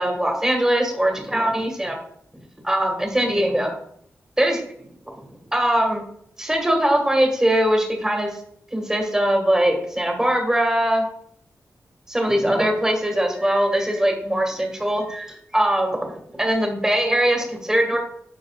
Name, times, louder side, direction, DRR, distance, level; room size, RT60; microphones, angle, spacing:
voice 1, 0.0-2.0 2.6-3.8 4.4-4.6 5.5-6.0 6.4-8.4 8.7-11.1 12.1-18.0, right 1 dB, 10° right, 2 dB, 1.7 m, -21 dB
10.5 x 4.6 x 2.4 m, 0.68 s
wide cardioid pair, 105°, 5 cm